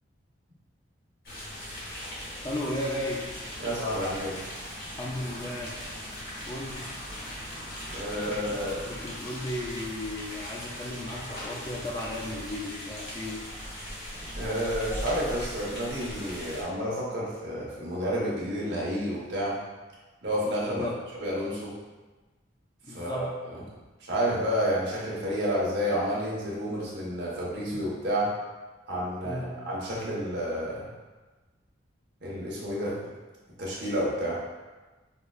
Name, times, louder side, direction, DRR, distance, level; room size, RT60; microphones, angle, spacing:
sound 1, 1.2-16.6, equal, 45° left, 0.9 m, -39 dB
voice 1, 2.4-3.2 5.0-5.8 6.5-6.9 8.3-13.5 20.7-21.0 22.8-23.3 29.2-29.5, left 1 dB, 20° left, -3 dB, 0.3 m, -35 dB
voice 2, 3.6-4.4 7.9-8.8 14.3-19.6 20.2-20.9 21.2-21.7 22.9-23.5 24.0-28.3 28.9-30.9 32.2-33.0 33.6-34.4, equal, 55° right, -6 dB, 1.0 m, -30 dB
4.7 x 2.3 x 2.3 m, 1.2 s
head